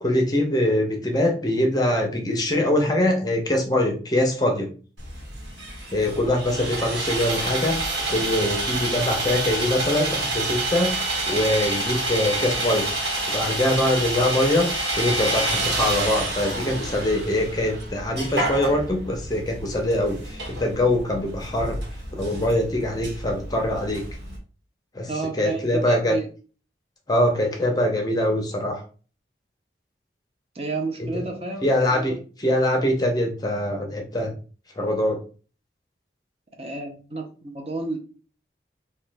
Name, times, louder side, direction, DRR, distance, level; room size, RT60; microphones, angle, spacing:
voice 1, 0.0-4.7 5.9-10.9 11.3-12.9 13.3-14.7 15.0-21.8 22.1-24.0 24.9-26.2 27.1-28.8 31.0-31.1 31.6-34.3 34.8-35.2, left 1 dB, 20° left, 0.6 m, -23 dB
Sawing, 5.0-24.4, right 2 dB, 75° right, 1.1 m, -28 dB
voice 2, 25.1-26.3 30.6-32.1 36.6-38.0, right 3 dB, 35° right, 0.5 m, -31 dB
3.0 x 2.2 x 3.3 m
head